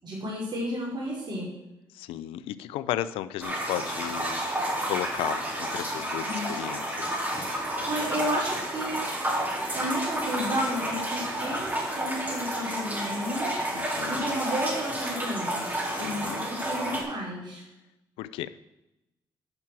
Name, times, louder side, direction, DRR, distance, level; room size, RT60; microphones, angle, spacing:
voice 1, 0.0-1.5 6.2-6.5 7.8-9.0 9.7-17.6, equal, 55° right, -5 dB, 4.9 m, -32 dB
voice 2, 1.9-7.2 13.7-14.4 15.8-16.4 18.2-18.5, left 13 dB, 85° left, 15 dB, 0.5 m, -35 dB
sound 1, 3.4-17.0, right 1 dB, 20° right, 4.1 m, -31 dB
10.5 x 5.9 x 7.5 m, 0.93 s
supercardioid pair, 55°, 9 cm